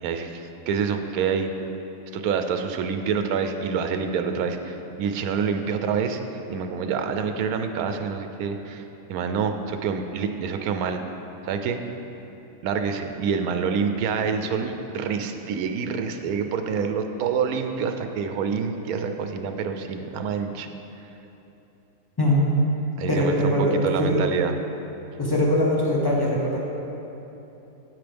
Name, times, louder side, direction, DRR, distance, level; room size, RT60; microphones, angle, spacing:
voice 1, 0.0-1.5 2.1-6.2 6.5-8.8 9.1-11.0 11.4-11.8 12.6-20.7 23.0-23.5 23.8-24.5, right 6 dB, 85° right, 7 dB, 1.1 m, -27 dB
voice 2, 23.1-24.2 25.2-26.6, left 1 dB, 15° left, -4 dB, 1.1 m, -21 dB
9.3 x 7.8 x 3.4 m, 3.0 s
omnidirectional pair, 1.5 m